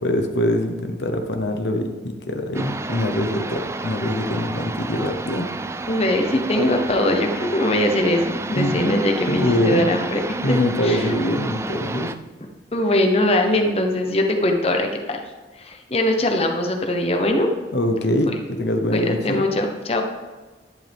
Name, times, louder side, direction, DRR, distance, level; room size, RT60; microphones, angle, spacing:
voice 1, 0.0-5.5 8.5-9.9 10.4-12.1 17.7-19.5, left 1 dB, 70° left, 5 dB, 1.1 m, -23 dB
sound 1, 2.5-12.1, right 2 dB, 15° right, 0.3 m, -31 dB
voice 2, 5.9-11.1 12.7-15.2 15.6-17.5 18.9-20.0, left 1 dB, 35° left, 3 dB, 1.0 m, -21 dB
11.0 x 11.0 x 3.6 m, 1.3 s
head